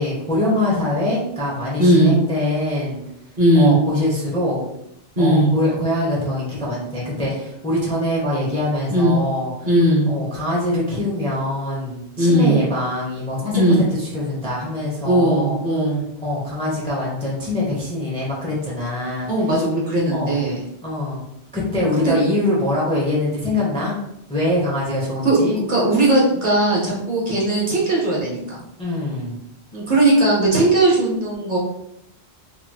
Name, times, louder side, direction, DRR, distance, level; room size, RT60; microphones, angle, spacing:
voice 1, 0.0-3.0 3.5-4.6 5.2-9.5 10.1-15.6 16.2-19.3 20.1-20.4 20.8-21.2 21.5-24.0 24.3-25.6 28.8-29.4, left 1 dB, 5° left, -5 dB, 0.7 m, -23 dB
voice 2, 1.8-2.1 3.4-3.8 5.2-5.5 8.9-9.2 9.7-10.1 12.2-12.6 13.5-13.8 15.0-16.0 19.3-20.6 22.0-22.2 25.2-28.6 29.7-31.6, right 1 dB, 50° right, -5 dB, 1.0 m, -17 dB
3.0 x 2.9 x 2.2 m, 0.78 s
omnidirectional pair, 1.1 m